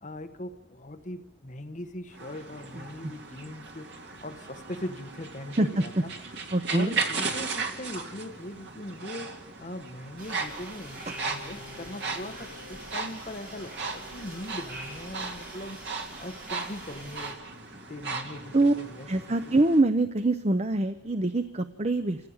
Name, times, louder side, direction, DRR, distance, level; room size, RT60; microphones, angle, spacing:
voice 1, 0.0-3.9 4.2-6.1 6.7-11.0 11.3-15.8 16.2-17.4 17.9-19.6, left 1 dB, 45° left, 7 dB, 1.3 m, -40 dB
sound 1, 2.1-19.8, right 4 dB, 75° right, 2.2 m, -37 dB
voice 2, 6.5-7.0 18.5-18.7 19.1-22.2, right 2 dB, 35° right, 10 dB, 0.7 m, -24 dB
sound 2, 10.2-17.3, right 1 dB, 55° right, 6.8 m, -45 dB
Bowed string instrument, 10.8-16.4, left 1 dB, 80° left, 4.3 m, -51 dB
26.5 x 15.5 x 8.8 m, 1.0 s
head